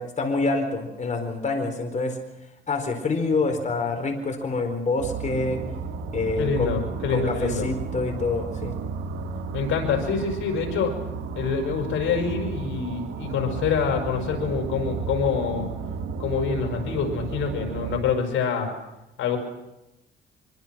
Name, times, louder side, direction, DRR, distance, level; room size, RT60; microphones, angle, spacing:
voice 1, 0.0-2.2 2.7-5.6 6.1-6.7 7.1-8.8, left 3 dB, 40° left, 5 dB, 4.3 m, -26 dB
sound 1, 5.0-18.0, right 5 dB, 85° right, 2.1 m, -33 dB
voice 2, 6.4-7.7 9.5-11.0 11.3-15.7 16.2-18.7 19.2-19.4, left 6 dB, 80° left, 4 dB, 5.9 m, -26 dB
25.5 x 24.0 x 6.1 m, 0.93 s
cardioid pair, 90°, 20 cm